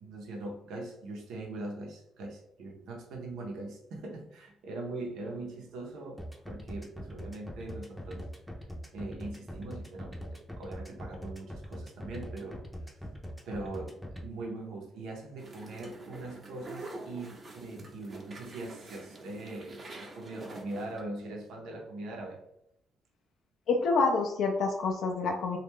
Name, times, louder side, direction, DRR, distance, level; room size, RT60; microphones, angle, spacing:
voice 1, 0.0-6.2 6.5-8.3 8.9-12.6 13.4-22.4, right 2 dB, 85° right, 0 dB, 0.8 m, -41 dB
sound 1, 6.2-14.2, equal, ahead, 0.6 m, -42 dB
sound 2, 15.4-21.0, right 2 dB, 40° right, 0.8 m, -46 dB
voice 2, 23.7-25.6, left 4 dB, 75° left, 1 dB, 0.4 m, -27 dB
3.0 x 2.4 x 3.5 m, 0.76 s
cardioid pair, 90°, 0 cm